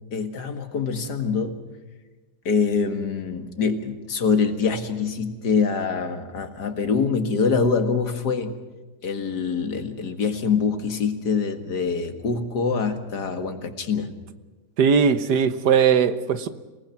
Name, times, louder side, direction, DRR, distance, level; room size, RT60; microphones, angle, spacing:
voice 1, 0.1-1.6 2.5-8.5 9.0-14.1, left 5 dB, 80° left, 8 dB, 2.5 m, -24 dB
voice 2, 14.8-16.5, right 6 dB, 80° right, 12 dB, 1.7 m, -19 dB
27.5 x 19.0 x 5.9 m, 1.2 s
omnidirectional pair, 1.7 m